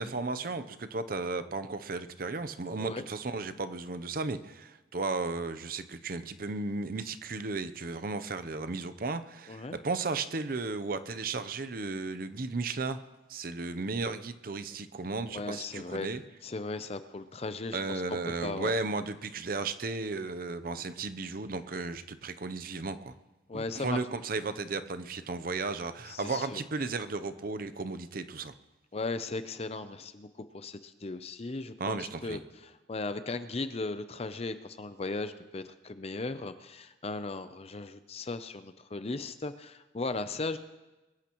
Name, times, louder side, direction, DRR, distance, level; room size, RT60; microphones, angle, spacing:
voice 1, 0.0-13.0 13.3-16.2 17.7-23.1 23.5-28.5 31.8-32.4, right 3 dB, 55° right, 11 dB, 0.7 m, -34 dB
voice 2, 15.3-16.1 16.4-18.0 18.4-18.7 23.5-24.0 26.1-26.6 28.9-30.3 30.5-40.6, left 3 dB, 35° left, 11 dB, 0.6 m, -37 dB
22.5 x 14.5 x 3.0 m, 1.1 s
head